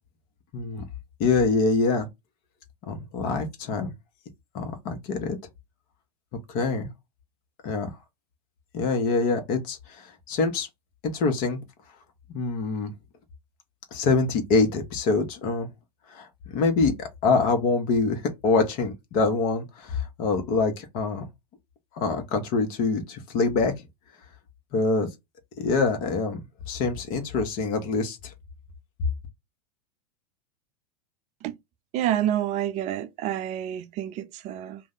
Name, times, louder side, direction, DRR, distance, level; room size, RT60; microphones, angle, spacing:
voice 1, 0.5-0.8 1.2-2.1 2.9-3.9 4.5-5.4 6.5-6.9 7.6-7.9 8.7-10.7 11.0-11.6 12.3-12.9 13.9-15.7 16.1-16.3 16.5-21.2 21.9-23.7 24.7-25.1 25.6-28.3, left 4 dB, 45° left, 1.1 m, -25 dB
voice 2, 31.9-34.8, right 11 dB, 35° right, 0.4 m, -28 dB
2.6 x 2.1 x 3.9 m
hypercardioid pair, 95°, 20 cm